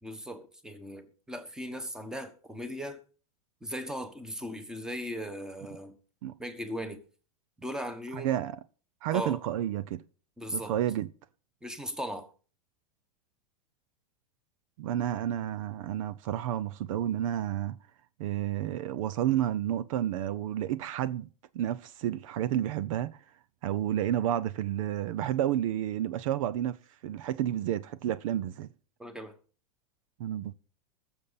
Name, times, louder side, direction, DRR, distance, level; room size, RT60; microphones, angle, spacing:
voice 1, 0.0-3.0 3.6-6.0 6.4-7.0 7.6-8.4 9.1-9.4 10.4-10.7 11.6-12.3 29.0-29.4, equal, 5° right, 1.3 m, -38 dB
voice 2, 8.1-8.6 9.0-10.0 10.5-11.1 14.8-17.8 18.2-21.3 21.5-23.2 23.6-26.8 27.0-28.7 30.2-30.5, right 11 dB, 65° right, 0.7 m, -30 dB
21.0 x 7.2 x 4.1 m
supercardioid pair, 145°, 19 cm